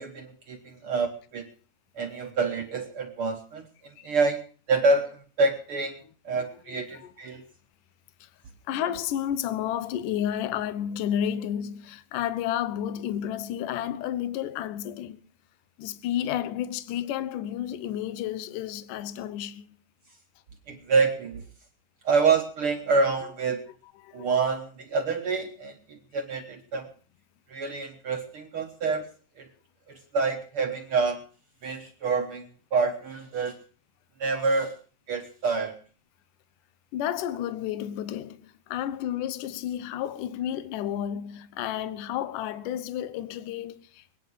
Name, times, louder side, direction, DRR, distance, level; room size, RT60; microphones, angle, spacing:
voice 1, 0.0-1.5 1.9-3.7 4.0-4.4 4.7-6.0 6.2-7.4 20.7-21.4 22.0-23.7 24.1-26.9 27.5-29.1 29.4-29.5 29.9-31.2 31.6-33.6 34.2-34.7 35.1-35.8, right 4 dB, 70° right, 1.3 m, -27 dB
voice 2, 6.7-7.1 8.2-8.3 8.7-15.2 15.8-19.8 24.0-24.3 26.3-26.4 36.9-44.2, left 10 dB, 70° left, 2.3 m, -31 dB
21.5 x 10.0 x 6.5 m
omnidirectional pair, 4.5 m